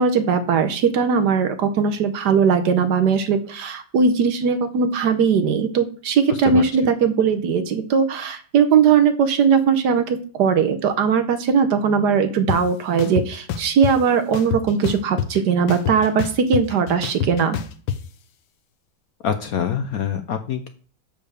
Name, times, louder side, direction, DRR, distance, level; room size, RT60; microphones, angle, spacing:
voice 1, 0.0-17.6, right 6 dB, 65° right, 8 dB, 1.3 m, -19 dB
voice 2, 6.3-6.6 19.2-20.7, left 8 dB, 65° left, 8 dB, 0.9 m, -25 dB
sound 1, 12.5-12.6 13.0-13.9 14.3-15.4 15.7-18.0, left 8 dB, 90° left, 1.6 m, -26 dB
6.9 x 5.4 x 6.5 m, 0.42 s
omnidirectional pair, 2.1 m